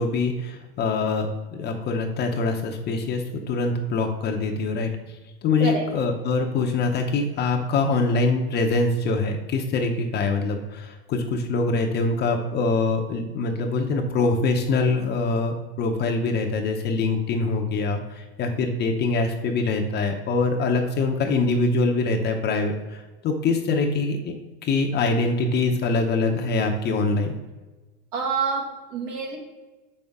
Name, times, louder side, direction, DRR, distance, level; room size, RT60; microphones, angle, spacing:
voice 1, 0.0-4.9 5.4-24.3 24.6-27.3, left 3 dB, 35° left, 3 dB, 0.7 m, -24 dB
voice 2, 28.1-29.4, right 5 dB, 60° right, 1 dB, 1.9 m, -27 dB
6.9 x 5.4 x 3.5 m, 1.2 s
supercardioid pair, 125°, 30 cm